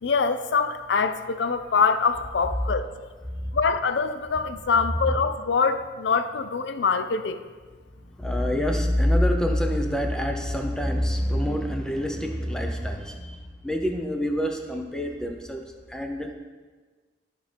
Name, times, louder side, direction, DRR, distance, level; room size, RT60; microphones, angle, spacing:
voice 1, 0.0-2.9 3.5-7.4, left 5 dB, 80° left, 11 dB, 0.5 m, -24 dB
voice 2, 8.2-16.3, equal, 5° left, 2 dB, 0.7 m, -26 dB
13.0 x 5.2 x 3.4 m, 1.4 s
head